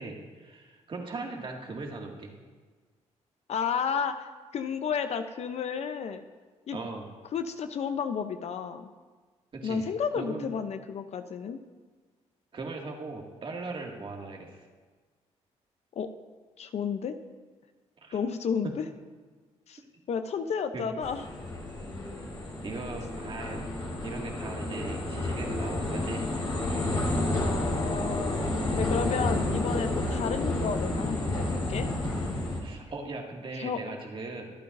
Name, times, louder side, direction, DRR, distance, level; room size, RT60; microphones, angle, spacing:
voice 1, 0.0-2.3 6.7-7.1 9.5-9.9 10.2-10.5 12.5-14.6 18.0-18.2 18.6-18.7 20.7-20.9 22.6-23.7 24.0-26.2 32.6-34.5, right 3 dB, 45° right, 0 dB, 2.2 m, -39 dB
voice 2, 3.5-6.2 6.7-6.8 7.3-8.9 9.6-11.6 15.9-16.1 16.6-17.1 18.1-18.8 19.7-19.8 20.1-21.2 27.4-28.4 28.7-31.9 33.5-33.8, left 6 dB, 60° left, 9 dB, 0.7 m, -32 dB
sound 1, 21.0-32.6, left 2 dB, 40° left, 3.8 m, -30 dB
23.5 x 8.7 x 2.7 m, 1.4 s
cardioid pair, 85°, 12 cm